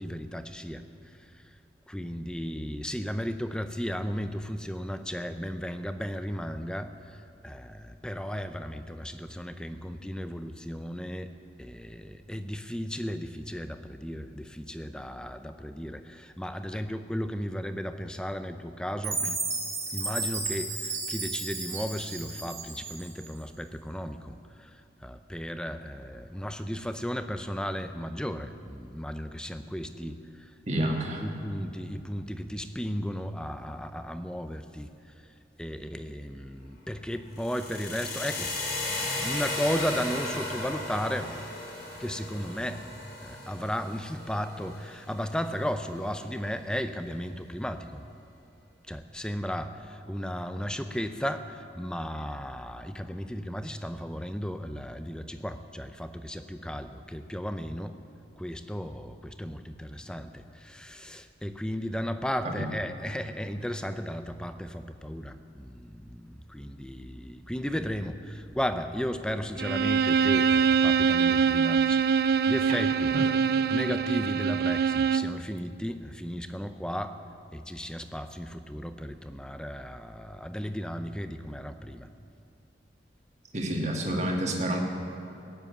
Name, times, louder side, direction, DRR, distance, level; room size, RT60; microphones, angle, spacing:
voice 1, 0.0-1.4 1.9-7.2 7.4-19.5 19.9-30.5 30.8-30.9 31.2-34.9 35.6-38.6 38.9-41.4 42.0-42.9 43.2-48.0 48.9-58.0 58.4-73.2 73.7-77.2 77.5-82.1, equal, 5° left, 9 dB, 0.5 m, -35 dB
Chime, 19.0-23.3, right 3 dB, 15° right, 1.4 m, -33 dB
voice 2, 30.7-31.2 62.4-62.7 73.1-73.3 83.5-84.8, right 1 dB, 35° right, 1 dB, 1.8 m, -29 dB
sound 1, 37.3-45.4, left 2 dB, 55° left, 3.8 m, -35 dB
Bowed string instrument, 69.6-75.4, right 6 dB, 55° right, 0.3 m, -24 dB
16.5 x 7.5 x 9.2 m, 2.9 s
head